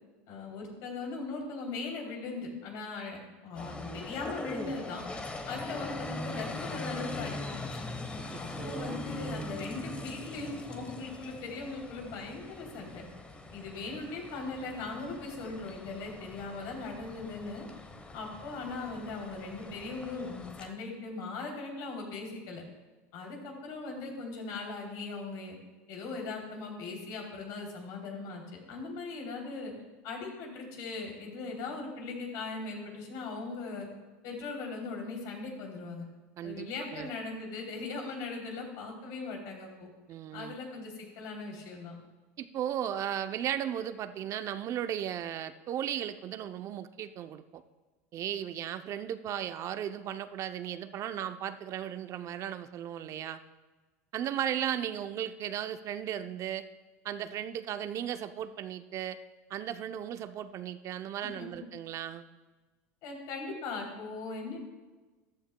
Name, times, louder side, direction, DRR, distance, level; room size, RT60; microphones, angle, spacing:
voice 1, 0.3-5.1 5.4-7.8 8.4-13.0 13.5-17.6 18.1-22.6 23.1-25.6 25.9-29.7 30.0-33.9 34.2-36.0 36.4-39.9 40.3-41.9 61.2-61.5 63.0-64.6, left 3 dB, 60° left, 1 dB, 3.1 m, -39 dB
sound 1, 3.6-20.7, left 2 dB, 15° left, 1.0 m, -42 dB
voice 2, 8.3-9.0 36.4-37.1 40.1-40.5 42.4-47.6 48.1-53.4 54.1-56.7 57.0-59.2 59.5-62.2, right 10 dB, 45° right, 10 dB, 0.5 m, -36 dB
14.5 x 11.5 x 2.2 m, 1.2 s
hypercardioid pair, 100°, 8 cm